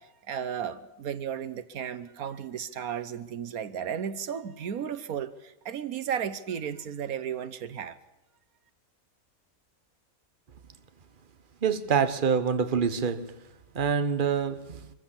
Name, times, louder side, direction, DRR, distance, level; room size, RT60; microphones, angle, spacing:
voice 1, 0.0-8.0, right 8 dB, 90° right, 1.5 m, -34 dB
voice 2, 11.6-13.3 13.7-14.8, right 6 dB, 40° right, 1.2 m, -26 dB
24.5 x 15.0 x 7.3 m
omnidirectional pair, 1.5 m